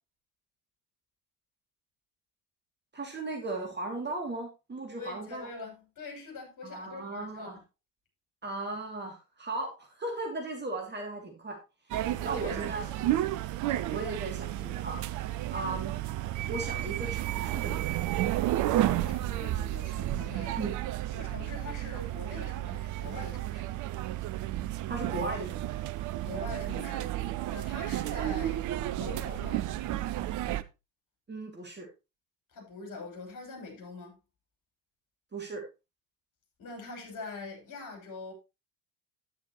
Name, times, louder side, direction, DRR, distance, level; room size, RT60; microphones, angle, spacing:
voice 1, 2.9-5.5 6.6-7.6 8.4-11.6 11.9-13.1 13.9-15.9 16.5-17.9 20.6-20.8 24.9-25.7 31.3-31.9 35.3-35.6, right 2 dB, 20° right, 2.7 m, -37 dB
voice 2, 5.0-7.6 12.0-12.8 18.7-20.7 21.1-23.7 26.2-27.1 27.5-29.7 32.5-34.2 36.6-38.3, left 3 dB, 40° left, 6.5 m, -44 dB
sound 1, 11.9-30.6, right 14 dB, 40° right, 0.7 m, -32 dB
10.5 x 9.9 x 3.1 m
figure-of-eight pair, 65°, 50 cm